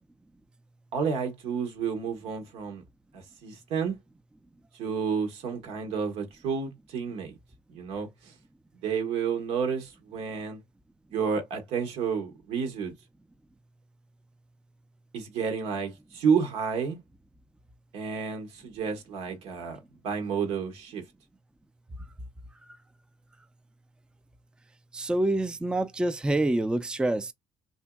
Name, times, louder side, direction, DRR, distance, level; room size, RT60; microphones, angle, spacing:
voice 1, 0.9-2.8 3.1-3.9 4.8-7.4 7.7-8.1 8.8-10.6 11.1-12.9 15.1-17.0 17.9-19.8 20.0-21.0, right 6 dB, 80° right, 1.1 m, -30 dB
voice 2, 24.9-27.3, right 1 dB, 10° right, 0.3 m, -26 dB
2.8 x 2.6 x 2.2 m
cardioid pair, 85°, 10 cm